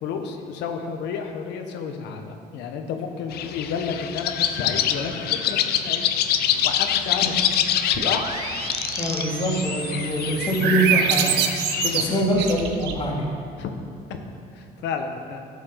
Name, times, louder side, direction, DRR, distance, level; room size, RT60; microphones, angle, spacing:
voice 1, 0.0-6.0 6.6-7.3 8.0-8.3 11.8-12.3 13.6-13.7 14.5-15.4, left 6 dB, 85° left, 5 dB, 1.2 m, -31 dB
sound 1, 3.3-12.2, left 10 dB, 65° left, 0.6 m, -26 dB
sound 2, 7.9-11.5, right 4 dB, 30° right, 0.9 m, -35 dB
voice 2, 9.0-11.3 11.9-13.3, equal, 30° left, -4 dB, 2.7 m, -23 dB
sound 3, 10.4-13.1, right 8 dB, 80° right, 0.9 m, -24 dB
14.5 x 7.4 x 4.0 m, 2.3 s
cardioid pair, 110°, 17 cm